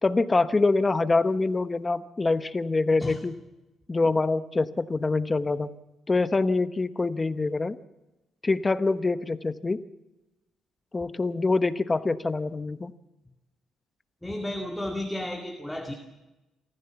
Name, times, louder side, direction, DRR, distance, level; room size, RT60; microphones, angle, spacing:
voice 1, 0.0-3.3 3.9-5.7 6.1-7.8 8.4-9.8 10.9-12.9, left 3 dB, 25° left, 12 dB, 1.1 m, -25 dB
voice 2, 14.2-15.9, left 1 dB, 5° left, 2 dB, 2.4 m, -33 dB
27.5 x 14.5 x 7.1 m, 1.0 s
cardioid pair, 90°, 0 cm